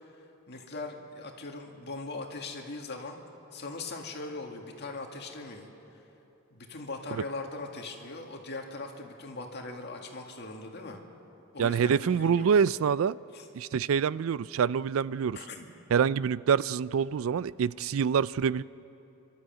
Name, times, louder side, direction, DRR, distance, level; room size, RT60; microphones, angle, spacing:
voice 1, 0.5-3.2 3.5-5.7 6.5-11.0 11.5-12.5 13.3-13.5 15.3-15.7, left 3 dB, 55° left, 2 dB, 2.1 m, -40 dB
voice 2, 11.6-13.2 13.5-15.4 15.9-18.6, right 7 dB, 70° right, 19 dB, 0.4 m, -26 dB
28.0 x 13.0 x 7.7 m, 3.0 s
head